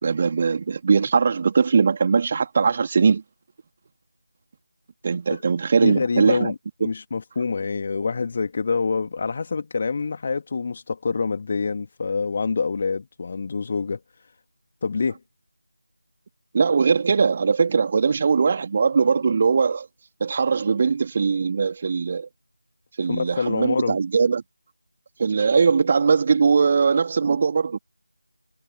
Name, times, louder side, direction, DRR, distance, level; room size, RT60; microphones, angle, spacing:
voice 1, 0.0-3.2 5.0-6.5 6.8-6.9 16.5-19.9 20.2-22.3 23.0-24.4 25.2-27.8, right 5 dB, 25° right, 2.8 m, -20 dB
voice 2, 5.8-14.0 14.8-15.2 23.1-24.0, left 4 dB, 25° left, 2.3 m, -26 dB
figure-of-eight pair, 165°, 0 cm